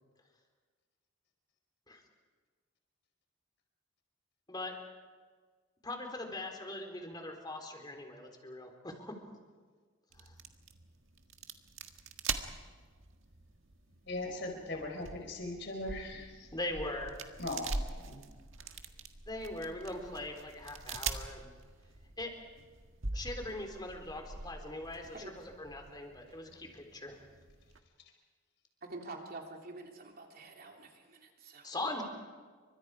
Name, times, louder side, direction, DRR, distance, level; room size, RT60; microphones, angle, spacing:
voice 1, 5.8-9.1 10.2-10.3 16.5-17.2 19.3-21.5 22.2-22.3 23.1-27.2 31.6-32.0, left 2 dB, 20° left, 3 dB, 3.7 m, -41 dB
sound 1, 10.1-27.8, right 4 dB, 85° right, 1.7 m, -44 dB
voice 2, 14.1-16.5 17.4-18.2, left 2 dB, 60° left, 2 dB, 4.5 m, -39 dB
voice 3, 28.8-31.7, right 2 dB, 50° right, 1 dB, 3.3 m, -47 dB
30.0 x 25.0 x 4.9 m, 1.5 s
head